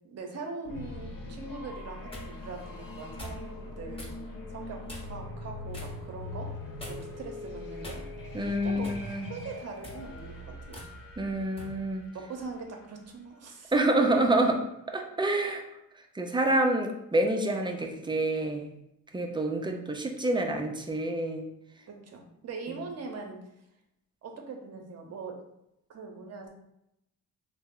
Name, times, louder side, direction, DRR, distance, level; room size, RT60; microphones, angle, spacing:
voice 1, 0.0-4.1 4.5-6.5 6.9-8.0 8.3-10.8 12.1-13.7 21.9-23.4 24.2-25.4 25.9-26.5, right 4 dB, 45° right, 2 dB, 0.7 m, -42 dB
sound 1, 0.6-13.4, left 2 dB, 70° left, 0.9 m, -42 dB
sound 2, 1.7-2.3 3.2-3.4 4.0-4.2 4.9-5.2 5.7-6.0 6.8-7.2 7.8-8.3 8.8-9.1 9.7-10.0 10.7-10.9 11.6-11.8, equal, 15° left, 0.8 m, -43 dB
voice 2, 8.3-9.3 11.2-12.1 13.7-14.6 14.9-15.6 16.0-18.7 19.1-21.4, right 1 dB, 15° right, 3 dB, 0.3 m, -27 dB
3.3 x 2.0 x 3.6 m, 0.82 s
cardioid pair, 110°, 35 cm